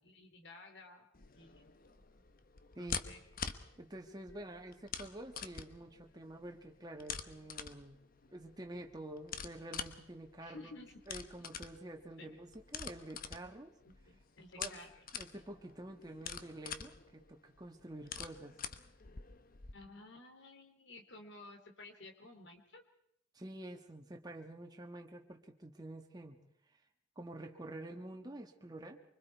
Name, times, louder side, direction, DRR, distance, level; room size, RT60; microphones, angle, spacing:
voice 1, 0.0-1.1 1.3-2.0 2.8-3.3 10.4-10.9 12.2-12.4 13.8-15.0 19.7-22.8, left 2 dB, 65° left, 5 dB, 3.1 m, -54 dB
sound 1, 1.1-19.7, left 6 dB, 50° left, 1.1 m, -46 dB
voice 2, 2.7-3.1 3.8-8.0 8.3-10.8 11.1-13.7 14.6-14.8 15.1-18.6 23.3-26.4 27.1-29.0, right 1 dB, 20° right, 2 dB, 1.5 m, -48 dB
24.5 x 24.5 x 4.6 m, 0.73 s
head